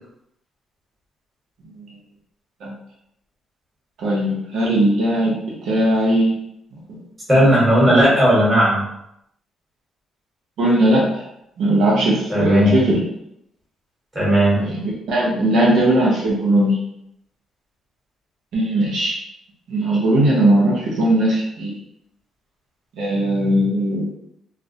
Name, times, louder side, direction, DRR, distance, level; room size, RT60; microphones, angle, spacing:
voice 1, 4.0-6.4 7.5-7.9 10.6-11.2 11.6-13.0 14.5-16.8 18.5-19.1 19.7-21.8 23.0-24.1, right 1 dB, 80° right, -5 dB, 0.7 m, -18 dB
voice 2, 7.3-8.8 12.3-12.7 14.1-14.6, equal, 20° right, -6 dB, 1.2 m, -15 dB
2.4 x 2.1 x 2.6 m, 0.79 s
cardioid pair, 90°, 0 cm